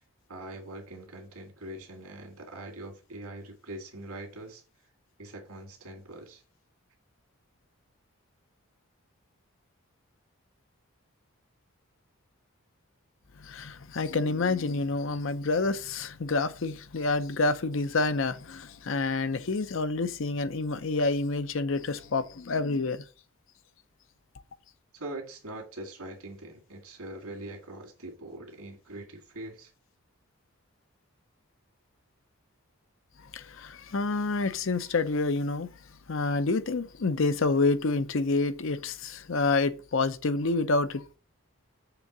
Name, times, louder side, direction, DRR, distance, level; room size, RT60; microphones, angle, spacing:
voice 1, 0.3-4.6 5.2-6.4 24.9-29.7, right 1 dB, 80° right, 2.1 m, -42 dB
voice 2, 13.4-23.0 33.3-35.7 36.1-41.2, left 3 dB, 60° left, 0.6 m, -28 dB
6.8 x 3.6 x 6.0 m
head